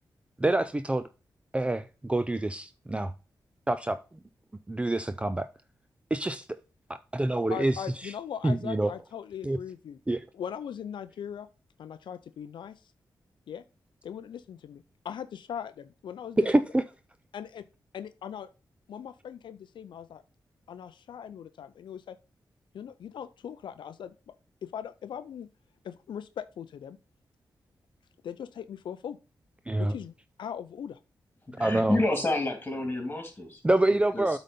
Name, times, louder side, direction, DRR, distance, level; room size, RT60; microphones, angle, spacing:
voice 1, 0.4-1.1 1.5-3.1 3.7-4.0 4.7-5.5 6.1-6.5 7.1-8.1 8.4-8.9 9.4-9.6 10.1-10.3 16.4-16.8 29.7-29.9 31.6-32.0 33.6-34.4, right 1 dB, 15° right, 0.4 m, -26 dB
voice 2, 7.5-10.0 10.3-11.5 11.8-12.8 13.5-13.6 14.0-16.5 17.3-17.7 17.9-18.5 18.9-20.2 20.7-22.2 22.7-24.3 24.6-25.5 25.8-27.0 28.2-29.2 29.8-30.1 30.4-31.0, left 8 dB, 85° left, 0.4 m, -40 dB
voice 3, 31.5-33.6 34.1-34.4, left 2 dB, 25° left, 2.8 m, -29 dB
8.3 x 3.9 x 5.3 m
cardioid pair, 75°, 8 cm